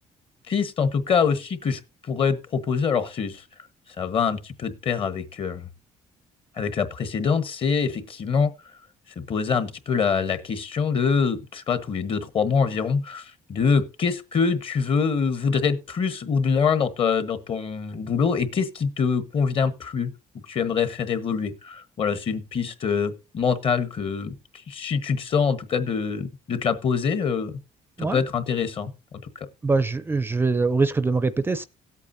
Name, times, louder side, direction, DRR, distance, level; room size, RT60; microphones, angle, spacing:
voice 1, 0.5-1.8 2.1-3.4 4.0-5.7 6.6-8.5 9.2-20.1 20.5-24.3 24.7-27.5 28.0-28.9 29.3-29.5, left 6 dB, 45° left, 1.3 m, -24 dB
voice 2, 29.6-31.6, right 3 dB, 15° right, 0.5 m, -23 dB
17.5 x 8.3 x 2.7 m
cardioid pair, 135°, 13 cm